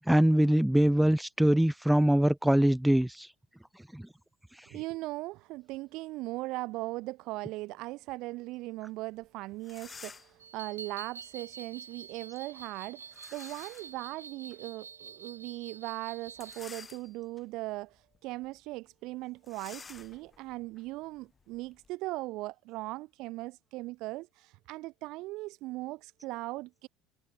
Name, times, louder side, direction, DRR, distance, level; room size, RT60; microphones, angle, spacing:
voice 1, 0.1-3.3 3.9-4.1, right 1 dB, 5° right, 1.2 m, -23 dB
voice 2, 4.7-26.9, right 20 dB, 55° right, 1.1 m, -39 dB
sound 1, 9.2-9.3 9.6-10.5 13.1-14.0 14.5-14.6 16.3-17.4 18.0-18.2 18.4-18.6 19.4-21.9, left 5 dB, 25° left, 3.8 m, -50 dB
sound 2, 10.4-16.6, right 6 dB, 85° right, 1.7 m, -47 dB
figure-of-eight pair, 65°, 0 cm